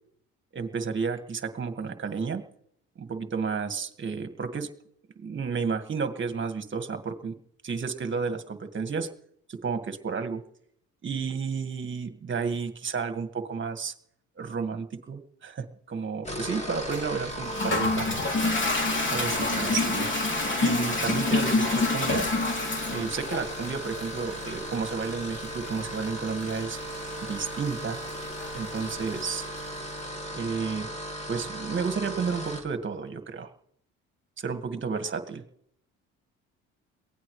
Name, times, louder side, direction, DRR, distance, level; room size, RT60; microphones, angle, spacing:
voice 1, 0.5-2.4 3.0-4.7 5.2-7.3 7.6-9.1 9.5-10.4 11.0-13.9 14.4-18.1 19.1-20.1 20.6-22.2 22.9-26.8 27.2-28.0 28.5-29.5 30.3-30.9 31.3-33.5 34.4-35.4, right 5 dB, 40° right, 8 dB, 1.8 m, -32 dB
sound 1, 16.1-32.7, right 1 dB, 20° left, 2.8 m, -37 dB
Toilet flush, 16.9-29.7, left 3 dB, 35° left, 3.1 m, -29 dB
22.5 x 17.0 x 3.2 m, 0.70 s
supercardioid pair, 80°, 32 cm